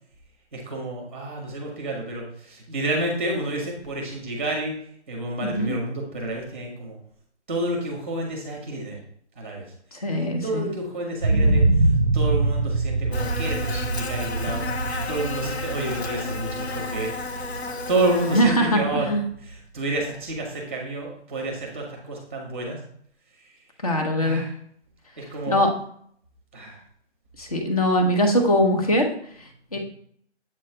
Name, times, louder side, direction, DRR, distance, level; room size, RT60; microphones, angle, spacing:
voice 1, 0.5-4.7 5.1-7.0 7.5-9.0 9.4-9.6 10.1-17.2 17.9-19.1 19.4-22.8 23.4-23.6 24.2-24.5 25.2-25.6 26.5-26.8 29.7-29.8, right 2 dB, 10° right, -1 dB, 0.9 m, -29 dB
voice 2, 5.4-5.7 9.9-10.6 18.3-19.2 23.8-24.4 25.5-25.7 27.4-29.1 29.7-29.8, equal, 30° left, 3 dB, 0.9 m, -21 dB
sound 1, 11.2-19.1 19.5-19.6, right 2 dB, 40° right, 0.5 m, -24 dB
Buzz, 13.1-18.4, left 4 dB, 65° left, 0.8 m, -32 dB
7.6 x 3.1 x 4.3 m, 0.64 s
hypercardioid pair, 175°, 34 cm